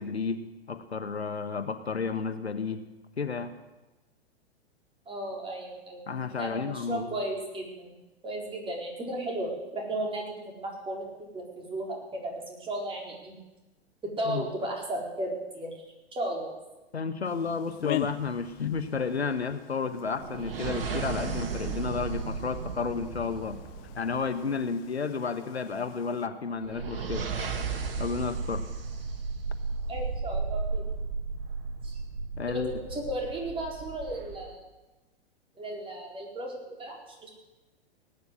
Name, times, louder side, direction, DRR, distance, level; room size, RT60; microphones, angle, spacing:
voice 1, 0.0-2.8 3.2-3.5 6.1-7.2 14.2-14.5 16.9-23.6 24.0-27.3 28.0-28.6 32.4-32.7, left 5 dB, 80° left, 10 dB, 1.3 m, -32 dB
voice 2, 5.1-6.1 6.3-8.0 8.2-11.1 11.3-13.4 14.2-15.7 16.1-16.5 29.9-30.9 31.8-32.0 32.5-34.6 35.6-37.3, right 1 dB, 15° right, -1 dB, 4.5 m, -35 dB
sound 1, 17.2-26.3, left 15 dB, 30° left, 0.7 m, -43 dB
sound 2, 20.1-24.4 26.6-34.5, right 4 dB, 65° right, 2.1 m, -34 dB
18.5 x 9.7 x 8.0 m, 1.1 s
figure-of-eight pair, 105°, 32 cm